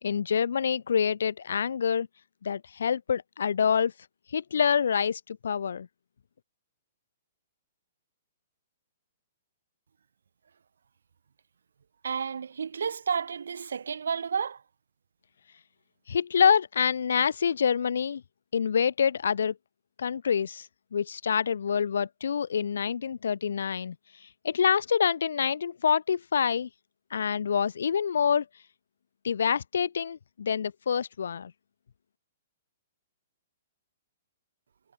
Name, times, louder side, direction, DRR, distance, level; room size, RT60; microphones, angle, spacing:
voice 1, 0.0-2.1 2.4-3.9 4.3-5.9 16.1-18.2 18.5-19.5 20.0-20.7 20.9-23.9 24.4-26.7 27.1-28.4 29.2-31.5, left 7 dB, 75° left, 3.0 m, -26 dB
voice 2, 12.0-14.6, right 6 dB, 80° right, 3.2 m, -31 dB
hypercardioid pair, 130°, 0 cm